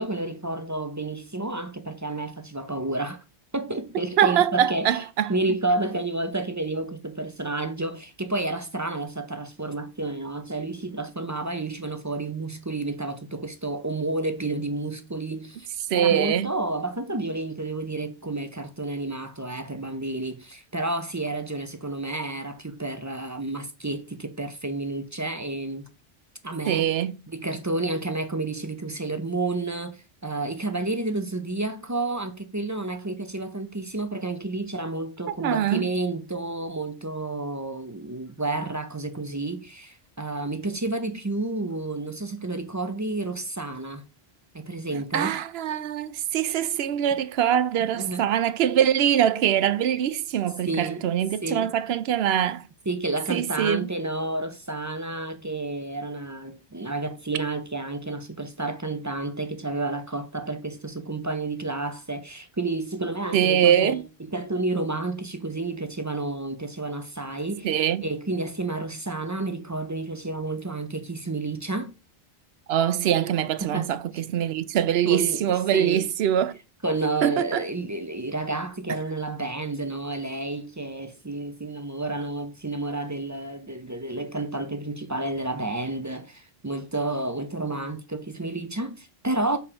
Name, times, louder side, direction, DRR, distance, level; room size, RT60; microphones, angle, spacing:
voice 1, 0.0-3.2 3.5-5.0 5.3-15.7 15.9-25.9 26.4-27.0 27.3-44.1 44.5-45.4 47.9-48.3 50.6-51.1 51.4-51.7 52.9-71.9 73.6-73.9 75.0-76.1 76.8-89.6, right 2 dB, 20° right, 0.5 m, -30 dB
voice 2, 4.2-5.3 15.9-16.5 26.7-27.2 35.4-35.9 45.1-52.7 53.3-53.9 63.3-64.0 67.6-68.1 72.7-76.5 77.2-77.6, right 10 dB, 80° right, 0.8 m, -23 dB
6.7 x 4.3 x 4.3 m
omnidirectional pair, 1.0 m